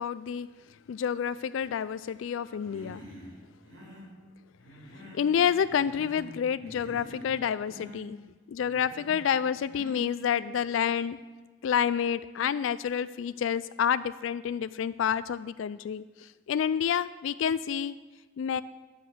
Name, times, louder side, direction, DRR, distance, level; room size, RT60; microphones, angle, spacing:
voice 1, 0.0-3.0 4.9-8.2 8.5-11.2 11.6-18.0 18.4-18.6, left 8 dB, 85° left, 15 dB, 0.3 m, -29 dB
Human voice, 2.6-3.3 3.6-4.1 4.6-5.3 5.6-6.4 6.6-7.3 7.6-8.0 8.6-9.2 9.7-10.1, equal, 85° right, 4.0 m, -46 dB
10.0 x 7.8 x 7.7 m, 1.4 s
head